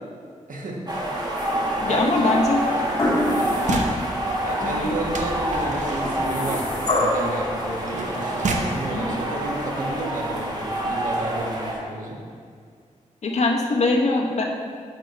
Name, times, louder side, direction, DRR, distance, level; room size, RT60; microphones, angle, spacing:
voice 1, 0.5-0.8 1.9-2.3 2.6-2.8 4.4-12.2, right 2 dB, 85° right, -1 dB, 1.3 m, -31 dB
sound 1, 0.9-11.7, right 1 dB, 30° right, 1.4 m, -27 dB
sound 2, 1.4-2.0 3.0-3.8 4.3-4.4 6.0-7.4 8.5-8.6, left 1 dB, 35° left, 1.6 m, -25 dB
voice 2, 1.8-2.6 3.7-3.9 4.6-5.0 8.9-9.2 13.2-14.4, left 3 dB, 60° left, 0 dB, 0.9 m, -22 dB
sound 3, 2.7-4.1 5.1-8.8 9.6-9.7 9.9-10.2, right 3 dB, 70° right, 0.8 m, -32 dB
8.9 x 3.4 x 6.5 m, 2.1 s
wide cardioid pair, 160°, 13 cm